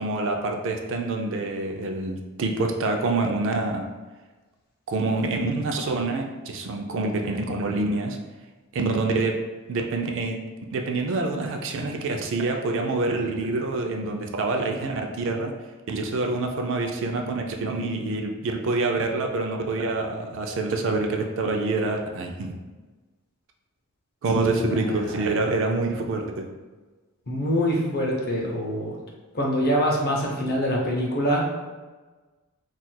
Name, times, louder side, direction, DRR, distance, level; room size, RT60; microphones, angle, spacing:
voice 1, 0.0-3.8 4.9-8.2 8.7-9.3 9.7-10.4 10.7-15.5 15.9-22.6 24.2-26.5, right 3 dB, 55° right, 3 dB, 0.4 m, -26 dB
voice 2, 27.3-29.0 29.3-31.6, equal, 45° left, -1 dB, 0.6 m, -24 dB
4.1 x 2.4 x 2.2 m, 1.3 s
head